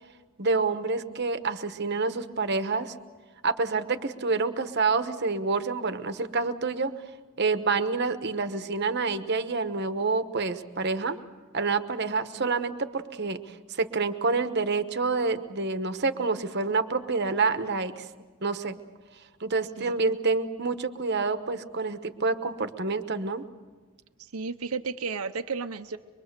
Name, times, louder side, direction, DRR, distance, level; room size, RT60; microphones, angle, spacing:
voice 1, 0.4-2.9 3.4-6.9 7.4-11.2 11.5-18.1 18.4-18.8 19.4-23.4, right 4 dB, 50° right, 10 dB, 1.1 m, -28 dB
voice 2, 24.2-26.0, right 5 dB, 85° right, 9 dB, 0.8 m, -33 dB
24.0 x 23.5 x 6.8 m, 1.4 s
head